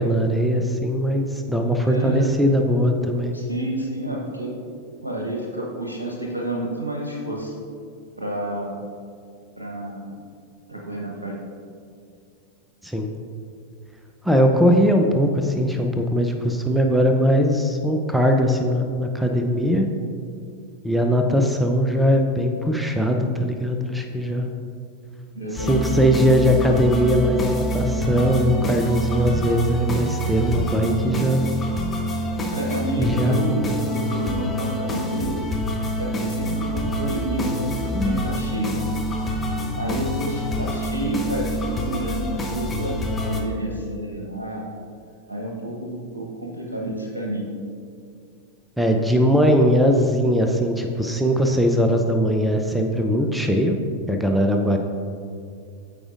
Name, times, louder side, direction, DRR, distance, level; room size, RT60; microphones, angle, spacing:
voice 1, 0.0-3.3 12.8-13.1 14.2-19.9 20.8-24.5 25.5-31.4 33.0-33.4 37.9-38.2 48.8-53.8 54.1-54.8, equal, 5° right, 3 dB, 0.5 m, -20 dB
voice 2, 1.8-2.3 3.3-4.5 5.0-7.6 8.2-8.8 9.6-10.1 10.7-11.4 25.3-26.0 30.8-31.1 32.5-35.4 36.0-38.7 39.8-44.7 45.3-47.5, right 1 dB, 75° right, -2 dB, 1.0 m, -29 dB
sound 1, 25.6-43.4, equal, 15° left, 0.9 m, -26 dB
13.5 x 4.9 x 2.5 m, 2.3 s
figure-of-eight pair, 90°, 0 cm